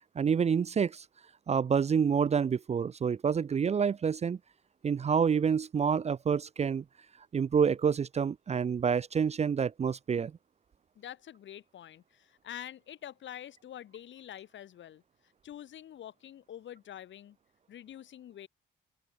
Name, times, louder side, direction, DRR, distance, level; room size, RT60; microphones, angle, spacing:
voice 1, 0.2-1.0 1.5-4.4 4.8-6.8 7.3-10.3, right 6 dB, 35° right, 0.5 m, -28 dB
voice 2, 10.9-17.4 17.7-18.5, left 11 dB, 70° left, 5.1 m, -46 dB
open air
cardioid pair, 90°, 20 cm